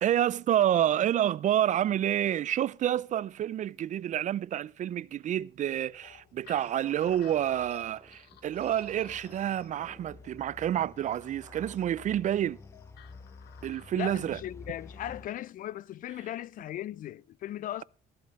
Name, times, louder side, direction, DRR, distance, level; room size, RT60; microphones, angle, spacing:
voice 1, 0.0-12.6 13.6-14.4, right 11 dB, 45° right, 0.5 m, -28 dB
sound 1, 5.7-15.3, left 4 dB, 15° left, 1.1 m, -51 dB
sound 2, 6.0-14.2, left 11 dB, 75° left, 1.2 m, -56 dB
sound 3, 7.1-12.2, right 4 dB, 20° right, 0.9 m, -57 dB
voice 2, 13.9-17.8, left 12 dB, 55° left, 0.4 m, -38 dB
17.0 x 11.0 x 3.1 m
cardioid pair, 110°, 17 cm